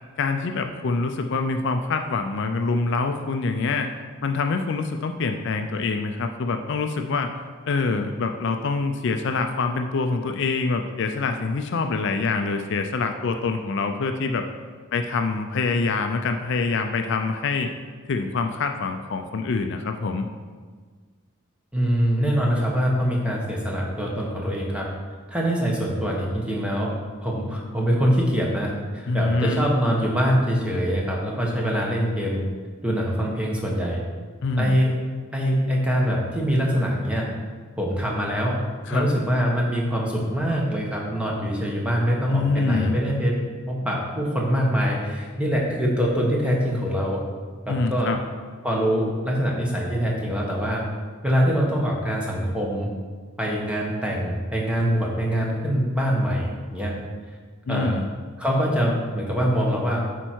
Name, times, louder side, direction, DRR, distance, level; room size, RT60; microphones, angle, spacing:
voice 1, 0.2-3.9 4.2-7.3 7.7-14.4 14.9-17.7 18.1-20.3 29.1-29.7 34.4-34.7 38.9-39.1 42.3-43.0 47.7-48.2 57.7-58.1, left 4 dB, 55° left, 6 dB, 0.4 m, -25 dB
voice 2, 21.7-24.9 25.3-26.9 27.2-32.4 32.8-34.0 34.6-34.9 35.3-37.3 37.8-38.6 38.9-43.4 43.7-47.2 47.7-48.1 48.6-50.8 51.2-52.9 53.4-57.0 57.7-58.0 58.4-60.0, equal, 5° right, -3 dB, 1.1 m, -24 dB
8.8 x 4.5 x 4.5 m, 1.5 s
head